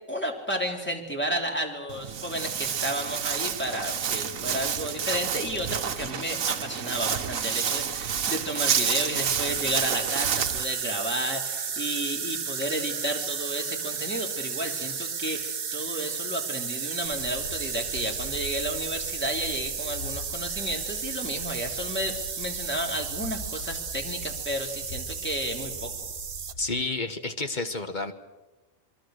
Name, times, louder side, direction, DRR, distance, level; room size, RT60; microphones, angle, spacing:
voice 1, 0.1-25.9, equal, 10° left, 1 dB, 3.2 m, -32 dB
Walk footsteps, 1.9-10.6, right 8 dB, 75° right, 1.4 m, -29 dB
sound 1, 9.5-26.5, right 7 dB, 45° right, 1.1 m, -33 dB
sound 2, 17.0-26.8, left 2 dB, 75° left, 3.3 m, -43 dB
voice 2, 26.6-28.1, left 3 dB, 35° left, 8 dB, 1.4 m, -30 dB
27.5 x 22.5 x 6.6 m, 1.1 s
omnidirectional pair, 1.4 m